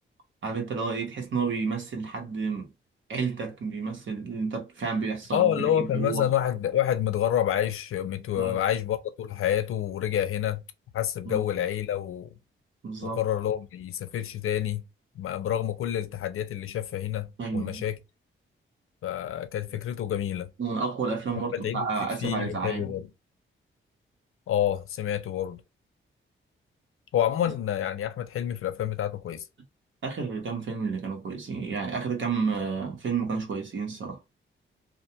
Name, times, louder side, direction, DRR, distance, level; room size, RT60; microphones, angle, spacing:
voice 1, 0.4-2.7 3.1-6.3 8.4-8.6 11.2-11.4 12.8-13.2 17.4-17.8 20.6-22.9 30.0-34.2, right 5 dB, 65° right, 1.0 m, -31 dB
voice 2, 5.3-10.6 10.9-12.3 13.0-14.8 15.2-18.0 19.0-20.5 21.5-23.1 24.5-25.6 27.1-29.4, left 11 dB, 90° left, 0.5 m, -28 dB
2.5 x 2.2 x 2.7 m
wide cardioid pair, 150°, 21 cm